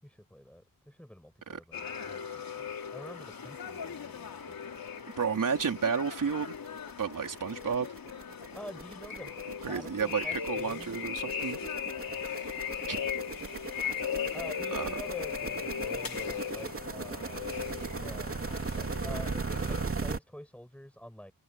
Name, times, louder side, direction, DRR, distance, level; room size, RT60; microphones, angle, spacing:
voice 1, 0.0-4.6 8.5-9.3 9.7-11.1 12.1-12.7 13.0-13.1 14.3-17.5 18.0-21.3, equal, 5° left, 7.3 m, -47 dB
sound 1, 1.7-19.8, left 7 dB, 75° left, 4.2 m, -38 dB
sound 2, 4.8-4.9 5.2-5.3 5.6-20.2, right 4 dB, 40° right, 3.0 m, -38 dB
voice 2, 5.2-6.5 7.0-7.9 9.6-11.6 12.9-13.0 14.7-15.0, right 6 dB, 65° right, 3.8 m, -31 dB
wide cardioid pair, 115°, 35 cm